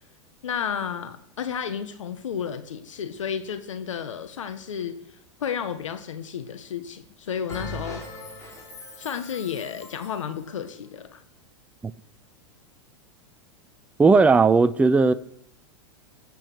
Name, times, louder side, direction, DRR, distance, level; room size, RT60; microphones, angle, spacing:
voice 1, 0.4-8.0 9.0-11.2, left 8 dB, 85° left, 1.3 m, -32 dB
Bell, 7.5-10.3, left 1 dB, 20° left, 5.0 m, -40 dB
voice 2, 14.0-15.1, right 4 dB, 10° right, 0.5 m, -17 dB
22.5 x 8.5 x 6.2 m
hypercardioid pair, 115°, 16 cm